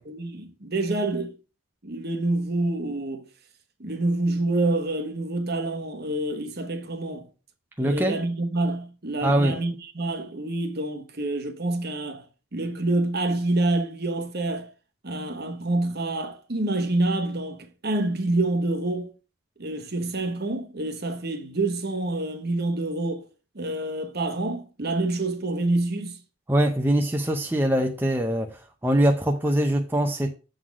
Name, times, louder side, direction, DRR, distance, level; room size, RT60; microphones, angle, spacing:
voice 1, 0.1-1.4 1.8-3.3 3.8-7.3 7.8-12.2 12.5-14.7 15.0-19.1 19.6-23.3 23.5-26.2, right 2 dB, 45° right, 1.1 m, -27 dB
voice 2, 7.8-8.2 9.2-9.6 26.5-30.3, right 1 dB, 10° right, 0.6 m, -23 dB
7.7 x 4.1 x 6.0 m
head